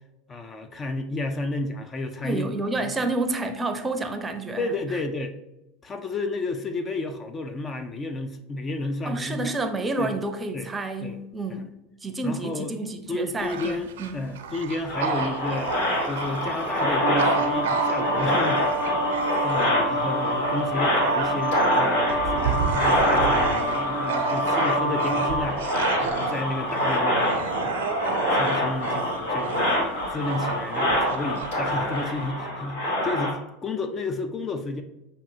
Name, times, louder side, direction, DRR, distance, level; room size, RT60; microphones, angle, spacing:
voice 1, 0.3-2.9 4.6-5.3 5.8-9.5 10.0-10.2 10.5-10.7 11.0-11.2 11.5-11.6 12.2-12.7 13.1-18.6 19.4-25.6 26.0-29.7 30.1-34.8, left 2 dB, 30° left, 0.4 m, -32 dB
voice 2, 2.2-4.7 9.1-11.7 12.0-14.2, right 2 dB, 20° right, 0.6 m, -29 dB
Bark / Growling, 13.4-20.0 20.4-32.3, right 5 dB, 70° right, 0.5 m, -31 dB
sound 1, 14.9-33.3, left 1 dB, 70° left, 1.4 m, -26 dB
sound 2, 17.0-25.4, equal, 90° left, 1.5 m, -27 dB
6.8 x 2.6 x 2.6 m
hypercardioid pair, 80°, 0 cm